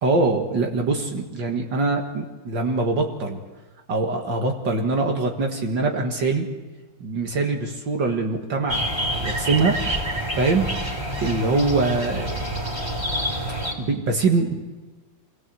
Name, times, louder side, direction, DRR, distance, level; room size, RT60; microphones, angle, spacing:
voice 1, 0.0-3.4 3.9-6.5 7.0-9.8 10.3-10.7 11.2-12.4 13.8-14.5, right 3 dB, 70° right, 2 dB, 2.4 m, -23 dB
sound 1, 8.7-13.7, right 1 dB, 15° right, 3.1 m, -27 dB
24.5 x 18.5 x 7.7 m, 1.3 s
omnidirectional pair, 2.1 m